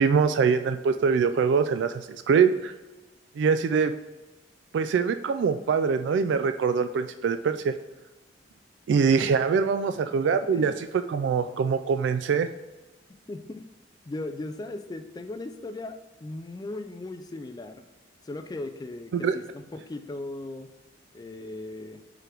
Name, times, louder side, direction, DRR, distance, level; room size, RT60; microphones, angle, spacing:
voice 1, 0.0-2.7 3.4-3.9 4.7-7.7 8.9-12.5 19.1-19.4, right 6 dB, 70° right, 10 dB, 0.3 m, -23 dB
voice 2, 10.3-10.8 13.3-13.6 14.1-17.8 18.2-20.7 21.1-22.0, left 2 dB, 20° left, 8 dB, 0.3 m, -38 dB
5.0 x 4.9 x 4.5 m, 1.2 s
head